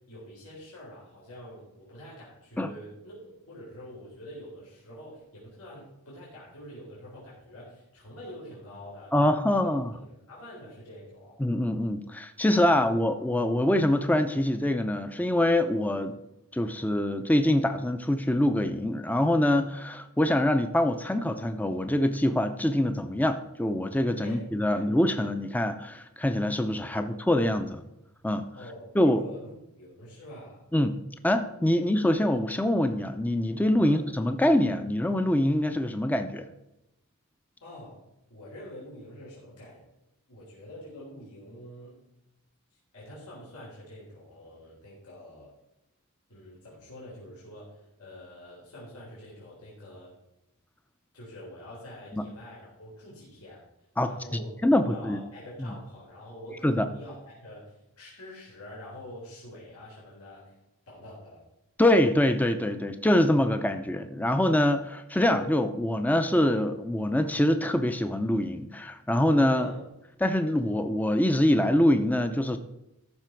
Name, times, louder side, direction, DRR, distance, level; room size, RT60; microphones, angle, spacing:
voice 1, 0.0-9.1 9.5-9.7 10.3-11.4 12.7-12.9 24.2-24.9 26.9-27.2 28.5-30.6 33.8-34.0 37.6-38.0 38.3-39.8 40.3-42.0 42.9-45.5 46.3-50.1 51.1-53.6 54.1-60.5 60.9-61.4 69.6-69.8, left 1 dB, 90° left, -6 dB, 3.7 m, -46 dB
voice 2, 9.1-9.9 11.4-16.1 16.5-27.8 28.2-28.5 28.9-29.2 30.7-36.5 52.1-52.3 54.0-55.2 55.6-55.7 56.6-56.9 61.8-69.7 70.2-72.6, left 1 dB, 5° left, 8 dB, 0.5 m, -25 dB
14.0 x 6.0 x 4.5 m, 0.88 s
head